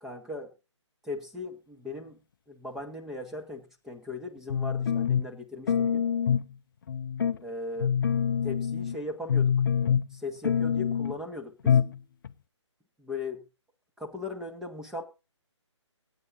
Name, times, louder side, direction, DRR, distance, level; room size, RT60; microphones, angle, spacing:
voice 1, 0.0-0.5 1.0-2.2 2.5-6.0 7.4-8.0 8.4-9.5 10.1-11.8 13.0-13.4 14.0-15.0, left 2 dB, 5° right, 1.3 m, -38 dB
sound 1, 4.5-5.3 5.7-6.5 6.9-7.4 7.8-9.0 9.3-10.2 10.4-11.2 11.7-12.0 12.2-12.3, left 7 dB, 45° left, 0.7 m, -25 dB
23.0 x 8.9 x 2.6 m
figure-of-eight pair, 145°, 16 cm